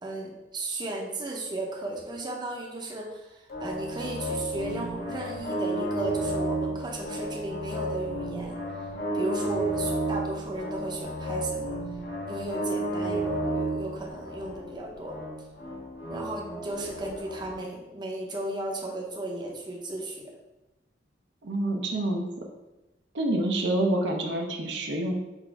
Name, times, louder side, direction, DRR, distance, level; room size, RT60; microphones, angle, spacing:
voice 1, 0.0-8.6 9.1-11.7 12.3-15.2 16.1-20.3 23.4-23.6, right 1 dB, 25° right, -1 dB, 0.6 m, -35 dB
sound 1, 3.5-17.5, right 1 dB, 60° left, 1.0 m, -32 dB
voice 2, 21.4-22.3 23.1-25.1, right 1 dB, 80° right, 2 dB, 0.7 m, -27 dB
4.1 x 2.6 x 4.5 m, 1.0 s
head